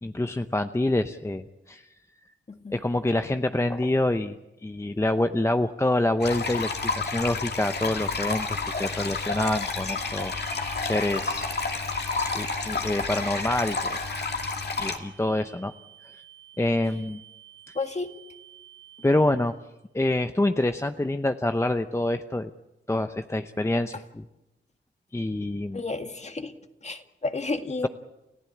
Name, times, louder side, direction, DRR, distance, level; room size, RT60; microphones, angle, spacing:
voice 1, 0.0-1.9 2.7-4.3 4.6-6.7 7.0-10.5 10.8-11.5 12.2-14.0 14.8-15.7 16.1-16.2 16.6-17.2 17.7-17.8 19.0-19.5 19.9-22.5 22.9-24.2 25.1-25.8, left 1 dB, 15° left, 8 dB, 0.8 m, -26 dB
voice 2, 2.5-2.8 17.7-18.1 25.7-26.5 26.8-27.9, left 3 dB, 35° left, 7 dB, 2.0 m, -31 dB
sound 1, 6.2-15.0, left 4 dB, 55° left, 2.5 m, -30 dB
sound 2, 8.0-19.4, right 6 dB, 85° right, 3.1 m, -47 dB
29.5 x 15.0 x 8.6 m, 0.96 s
cardioid pair, 80°, 20 cm